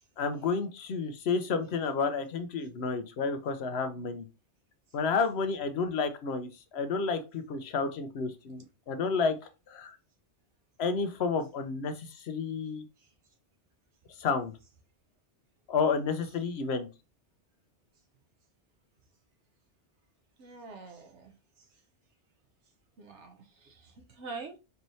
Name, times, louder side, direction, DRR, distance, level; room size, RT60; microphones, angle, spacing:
voice 1, 0.2-4.2 4.9-9.4 9.7-10.0 10.8-12.8 14.2-14.5 15.7-16.9, left 4 dB, 70° left, 0.9 m, -31 dB
voice 2, 20.4-21.7 23.0-24.6, right 4 dB, 85° right, 1.2 m, -45 dB
4.5 x 3.1 x 2.7 m
omnidirectional pair, 1.2 m